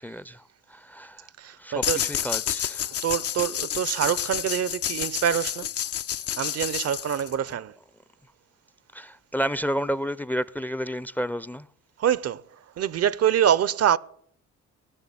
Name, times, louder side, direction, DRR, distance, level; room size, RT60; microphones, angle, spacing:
voice 1, 0.0-1.3 1.6-3.0 8.9-11.7, equal, 5° left, 0.5 m, -31 dB
voice 2, 1.4-2.0 3.0-5.7 6.4-7.7 12.0-12.4 12.8-14.0, right 9 dB, 55° right, 0.6 m, -25 dB
sound 1, 1.8-7.5, left 10 dB, 55° left, 0.6 m, -30 dB
18.5 x 6.6 x 9.9 m
cardioid pair, 90°, 30 cm